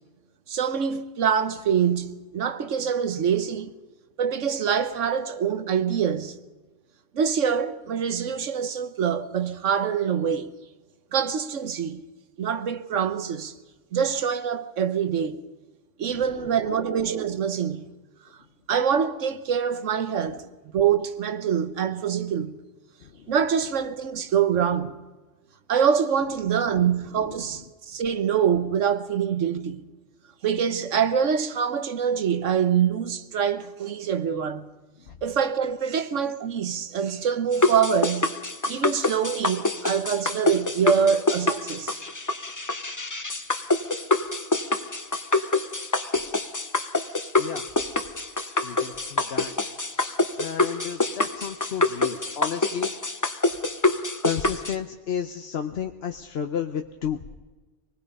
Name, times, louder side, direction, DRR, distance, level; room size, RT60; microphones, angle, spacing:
voice 1, 0.5-3.7 4.2-6.4 7.1-10.5 11.1-12.0 12.4-13.5 13.9-15.4 16.0-17.9 18.7-20.4 20.7-22.6 23.3-24.9 25.7-29.8 30.4-34.6 35.2-38.3 38.7-42.0, right 7 dB, 80° right, 1.4 m, -25 dB
voice 2, 16.1-16.6 23.0-23.3 35.1-35.2 45.8-46.0 47.4-47.7 48.6-49.5 49.9-52.9 54.2-57.2, left 8 dB, 60° left, 1.0 m, -32 dB
sound 1, 37.5-54.7, left 2 dB, 20° left, 0.7 m, -26 dB
25.0 x 19.5 x 5.4 m
omnidirectional pair, 1.3 m